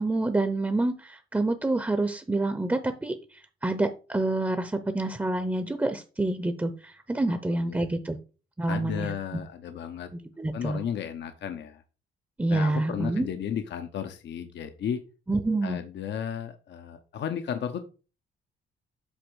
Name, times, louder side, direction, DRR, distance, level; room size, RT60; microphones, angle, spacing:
voice 1, 0.0-3.2 3.6-8.2 8.6-9.1 10.4-10.8 12.4-13.3 15.3-15.8, right 2 dB, 10° right, 9 dB, 0.8 m, -27 dB
voice 2, 7.3-7.8 8.7-10.1 10.5-11.8 12.5-15.0 15.6-17.8, left 8 dB, 65° left, 7 dB, 0.8 m, -34 dB
8.2 x 2.9 x 6.2 m, 0.34 s
cardioid pair, 90°, 20 cm